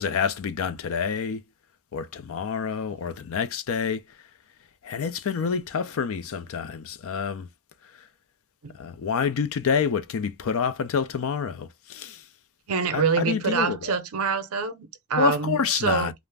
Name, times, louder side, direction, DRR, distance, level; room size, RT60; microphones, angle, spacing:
voice 1, 0.0-1.4 1.9-4.0 4.8-7.5 8.7-12.2 12.9-14.0 15.2-16.1, left 6 dB, 65° left, 0.4 m, -27 dB
voice 2, 12.7-16.1, right 5 dB, 85° right, 0.6 m, -26 dB
2.4 x 2.1 x 3.3 m
head